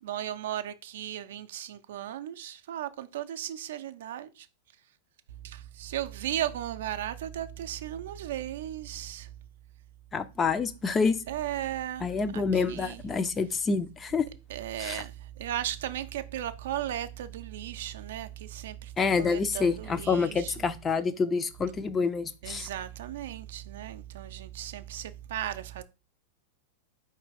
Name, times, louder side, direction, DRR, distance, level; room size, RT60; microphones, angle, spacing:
voice 1, 0.0-4.5 5.4-9.3 11.3-13.0 14.5-20.6 22.4-25.8, right 11 dB, 60° right, 0.4 m, -36 dB
voice 2, 10.1-11.2 12.0-14.3 14.8-15.0 19.0-22.7, left 5 dB, 20° left, 0.4 m, -27 dB
4.5 x 3.2 x 3.3 m
figure-of-eight pair, 95°, 0 cm